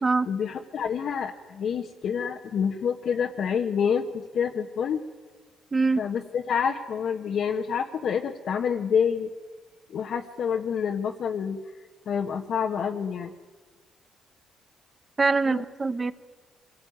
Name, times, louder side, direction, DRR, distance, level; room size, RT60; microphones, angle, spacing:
voice 1, 0.3-5.0 6.0-9.3 9.9-11.6 12.1-13.3 15.5-15.6, left 7 dB, 65° left, 1 dB, 1.3 m, -27 dB
voice 2, 5.7-6.0 15.2-16.1, right 3 dB, 30° right, 13 dB, 1.2 m, -23 dB
25.0 x 18.0 x 9.4 m, 1.4 s
cardioid pair, 90°, 0 cm